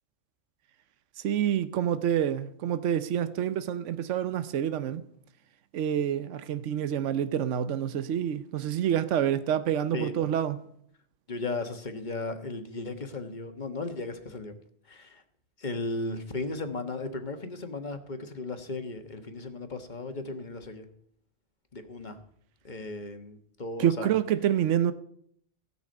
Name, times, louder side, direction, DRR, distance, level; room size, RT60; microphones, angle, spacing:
voice 1, 1.2-5.0 5.7-10.6 23.8-24.9, right 10 dB, 80° right, 1.0 m, -27 dB
voice 2, 11.3-14.5 14.9-15.2 15.6-20.9 21.7-22.2 22.6-24.1, left 3 dB, 40° left, 1.5 m, -36 dB
16.5 x 6.1 x 7.9 m
omnidirectional pair, 1.2 m